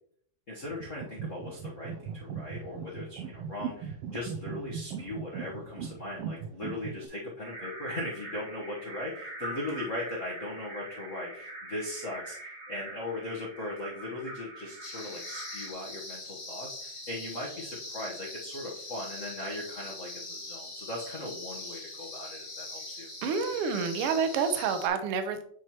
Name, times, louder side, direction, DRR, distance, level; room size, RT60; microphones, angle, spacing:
voice 1, 0.5-23.1, left 1 dB, 75° left, -4 dB, 0.7 m, -39 dB
sound 1, 0.6-7.1, right 7 dB, 85° right, 1.3 m, -39 dB
sound 2, 7.4-15.7, right 2 dB, 35° right, 0.9 m, -43 dB
sound 3, 14.8-24.9, left 2 dB, 35° left, 0.5 m, -42 dB
voice 2, 23.2-25.4, right 6 dB, 70° right, 8 dB, 1.5 m, -28 dB
9.3 x 4.6 x 2.9 m, 0.63 s
omnidirectional pair, 3.3 m